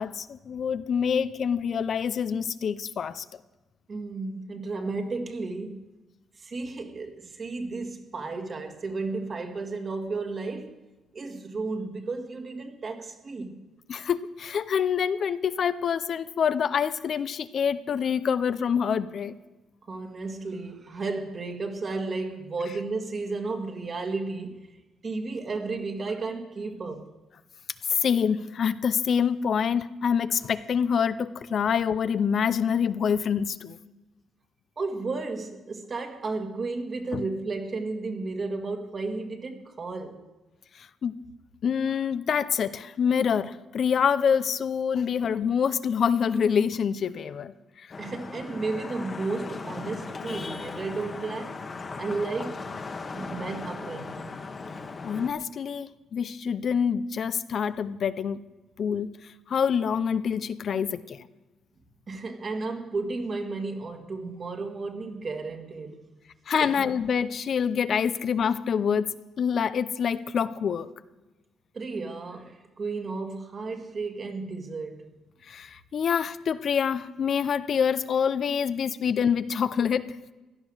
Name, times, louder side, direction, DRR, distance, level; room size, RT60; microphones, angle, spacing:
voice 1, 0.0-3.2 13.9-19.3 27.9-33.8 37.1-37.2 40.8-41.2 41.6-47.5 55.0-58.4 58.8-59.1 59.5-61.3 66.5-70.9 75.5-80.2, left 7 dB, 55° left, 0.6 m, -26 dB
voice 2, 3.9-5.9 6.4-10.8 11.1-13.6 19.9-24.7 25.0-27.1 34.8-40.2 48.0-51.7 52.0-52.7 53.1-54.4 62.1-66.1 66.6-66.9 71.7-75.1 79.0-79.1, right 3 dB, 40° right, 1.9 m, -33 dB
Vehicle horn car horn honking / Traffic noise roadway noise, 47.9-55.3, left 4 dB, 35° left, 1.3 m, -37 dB
16.0 x 11.5 x 6.4 m
cardioid pair, 90°, 0 cm